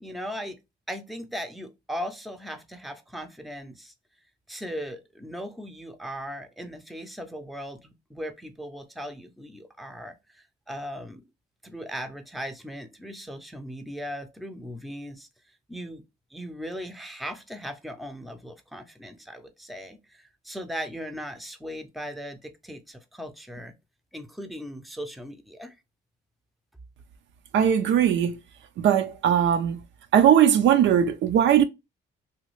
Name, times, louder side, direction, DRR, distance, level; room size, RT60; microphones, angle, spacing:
voice 1, 0.0-0.6 0.9-3.9 4.5-11.2 11.6-15.3 15.7-16.0 16.3-23.7 24.1-25.8, equal, ahead, 0.5 m, -38 dB
voice 2, 27.5-28.4 28.8-29.8 30.1-31.6, right 9 dB, 70° right, 0.5 m, -19 dB
3.1 x 2.3 x 3.1 m
cardioid pair, 90°, 20 cm